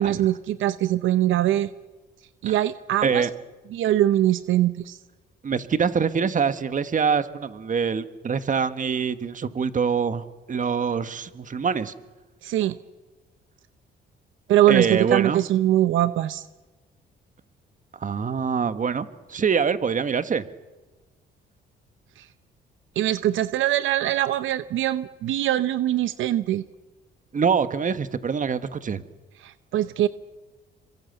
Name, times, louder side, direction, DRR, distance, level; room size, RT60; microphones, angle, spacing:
voice 1, 0.0-1.7 2.4-3.3 3.7-5.0 12.4-12.8 14.5-16.4 22.2-22.3 23.0-26.6 29.4-30.1, right 13 dB, 80° right, 13 dB, 0.8 m, -22 dB
voice 2, 5.4-11.9 14.7-15.4 18.0-20.4 27.3-29.0, right 6 dB, 40° right, 11 dB, 1.6 m, -24 dB
27.5 x 23.5 x 8.2 m, 1.2 s
cardioid pair, 90°, 20 cm